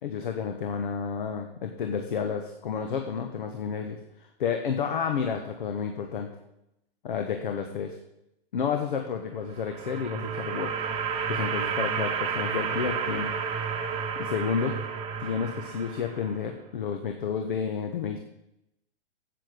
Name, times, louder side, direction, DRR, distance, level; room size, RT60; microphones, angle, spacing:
voice 1, 0.0-6.3 7.0-8.0 8.5-10.7 11.3-13.4 14.2-14.7 15.2-18.2, left 6 dB, 60° left, 5 dB, 1.2 m, -31 dB
sound 1, 9.3-16.5, right 6 dB, 20° right, 1.1 m, -31 dB
8.3 x 8.2 x 6.4 m, 0.84 s
figure-of-eight pair, 110°, 30 cm